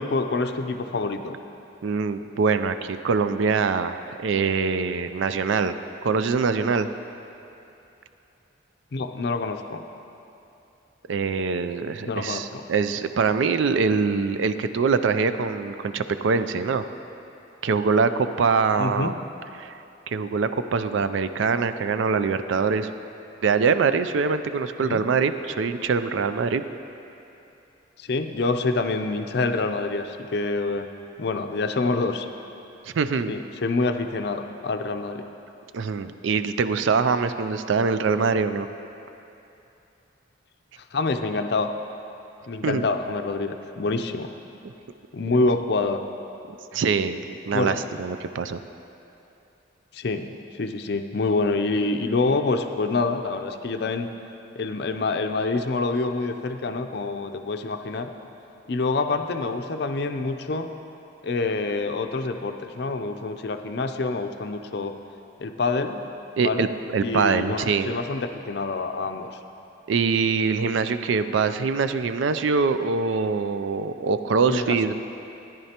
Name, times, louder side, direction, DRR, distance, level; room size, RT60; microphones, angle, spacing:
voice 1, 0.0-1.4 8.9-9.8 12.1-12.6 18.8-19.1 24.8-25.0 28.0-30.9 31.2-32.3 33.3-35.2 40.9-41.7 42.5-44.3 45.1-46.0 47.5-47.8 49.9-54.1 54.6-58.1 58.7-60.7 61.2-64.9 65.4-66.0 66.4-66.7 67.0-69.3 74.5-74.8, left 3 dB, 55° left, 7 dB, 0.5 m, -26 dB
voice 2, 1.8-5.8 6.0-6.9 11.1-16.8 17.6-19.1 19.6-19.7 20.1-22.9 23.4-26.6 32.8-33.3 35.7-38.7 42.6-42.9 44.6-44.7 46.7-48.6 66.4-66.7 66.9-67.9 69.9-74.9, right 5 dB, 75° right, 11 dB, 0.4 m, -23 dB
14.0 x 10.0 x 2.9 m, 2.8 s
head